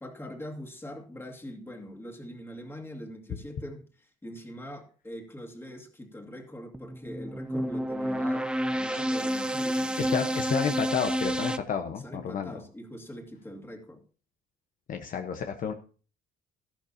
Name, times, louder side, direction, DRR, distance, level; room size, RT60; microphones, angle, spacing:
voice 1, 0.0-10.3 12.0-14.0, equal, 15° left, 3 dB, 2.5 m, -43 dB
sound 1, 6.7-11.6, equal, 5° right, 0.6 m, -29 dB
voice 2, 10.0-12.5 14.9-15.7, left 7 dB, 55° left, 6 dB, 1.1 m, -31 dB
13.5 x 12.0 x 2.8 m, 0.39 s
cardioid pair, 110°, 17 cm